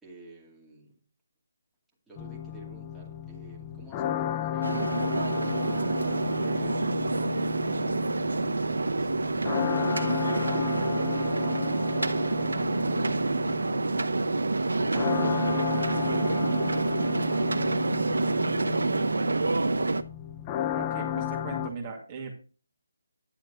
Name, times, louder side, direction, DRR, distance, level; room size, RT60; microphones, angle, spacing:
voice 1, 0.0-1.0 2.1-5.1, right 2 dB, 5° right, -5 dB, 2.4 m, -50 dB
sound 1, 2.2-21.7, left 10 dB, 20° left, 0.7 m, -34 dB
sound 2, 4.6-20.0, right 3 dB, 90° right, 0.9 m, -27 dB
voice 2, 20.7-22.3, right 4 dB, 25° right, 0 dB, 2.2 m, -38 dB
10.0 x 7.4 x 4.0 m, 0.36 s
hypercardioid pair, 165°, 0 cm